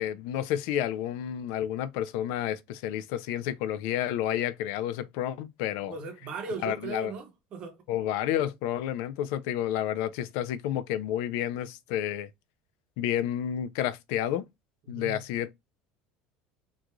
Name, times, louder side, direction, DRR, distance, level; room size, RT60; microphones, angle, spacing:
voice 1, 0.0-6.0 6.6-7.1 7.9-12.3 13.0-14.4 14.9-15.5, left 11 dB, 65° left, 0.4 m, -30 dB
voice 2, 5.9-7.8 14.9-15.3, right 4 dB, 35° right, 0.8 m, -37 dB
3.0 x 2.5 x 2.2 m
cardioid pair, 175°, 3 cm